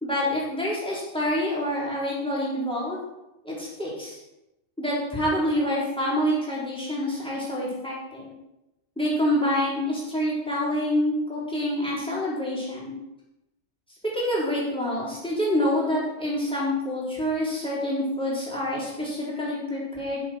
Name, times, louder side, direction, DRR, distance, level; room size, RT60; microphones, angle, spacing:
voice 1, 0.0-3.0 3.4-4.2 4.8-8.3 9.0-12.9 14.1-20.2, left 1 dB, 5° left, -6 dB, 4.1 m, -27 dB
13.0 x 8.3 x 4.6 m, 0.94 s
omnidirectional pair, 1.2 m